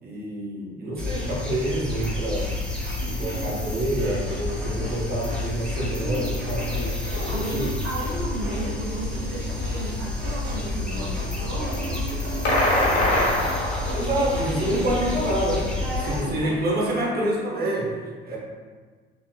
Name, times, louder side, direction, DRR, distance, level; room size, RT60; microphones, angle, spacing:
voice 1, 0.0-2.6 3.0-6.7 7.1-7.8 13.9-15.7 16.0-17.9 18.3-18.4, right 1 dB, 30° right, -3 dB, 0.8 m, -27 dB
sound 1, 1.0-16.2, left 2 dB, 5° left, 0.5 m, -30 dB
sound 2, 1.1-3.0 3.3-3.5 4.0-5.4 5.7-17.3, equal, 60° right, 1.1 m, -39 dB
voice 2, 3.0-3.7 7.1-13.2 14.5-15.0 15.7-16.4, right 2 dB, 75° right, -4 dB, 0.6 m, -34 dB
sound 3, 12.4-14.2, left 1 dB, 80° left, 0.8 m, -22 dB
2.9 x 2.8 x 2.2 m, 1.5 s
figure-of-eight pair, 55°, 32 cm